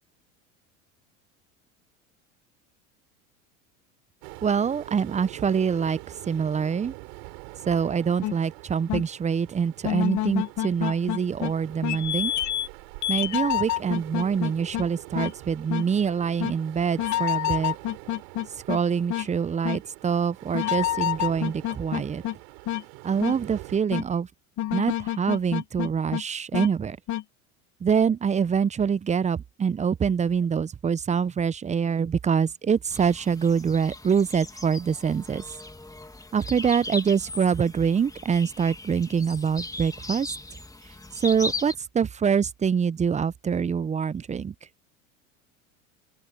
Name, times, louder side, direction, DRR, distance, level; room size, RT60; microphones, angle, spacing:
sound 1, 4.2-23.8, right 35 dB, 65° right, 4.7 m, -44 dB
voice 1, 4.4-6.0 6.3-6.9 7.7-12.3 13.1-17.7 18.7-22.2 23.0-24.3 24.7-27.0 27.8-35.4 36.3-40.3 41.2-44.5, right 6 dB, 15° right, 0.6 m, -25 dB
sound 2, 8.2-8.4 8.9-9.0 9.8-11.5 11.8-12.7 13.0-14.8 15.1-15.3 15.7-15.8 16.4-16.5 17.0-18.8 19.1-19.3 19.6-19.8 20.5-22.3 22.7-22.8 23.2-23.4 23.9-24.0 24.6-26.2 26.5-26.7 27.1-27.2, left 13 dB, 45° left, 1.6 m, -27 dB
sound 3, 32.9-41.7, left 2 dB, 10° left, 2.4 m, -38 dB
open air
hypercardioid pair, 85°, 40 cm